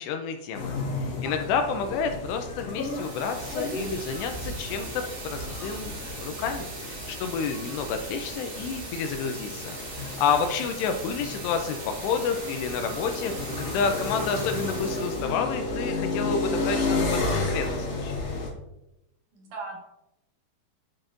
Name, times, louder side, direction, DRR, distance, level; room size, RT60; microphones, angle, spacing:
voice 1, 0.0-5.9 6.2-18.1, left 6 dB, 80° left, 5 dB, 2.6 m, -30 dB
sound 1, 0.5-18.5, left 3 dB, 50° left, 2.1 m, -32 dB
sound 2, 2.7-15.3, right 3 dB, 90° right, 5.4 m, -40 dB
voice 2, 19.3-19.8, right 4 dB, 55° right, -2 dB, 2.6 m, -39 dB
10.5 x 5.9 x 2.6 m, 0.89 s
omnidirectional pair, 5.0 m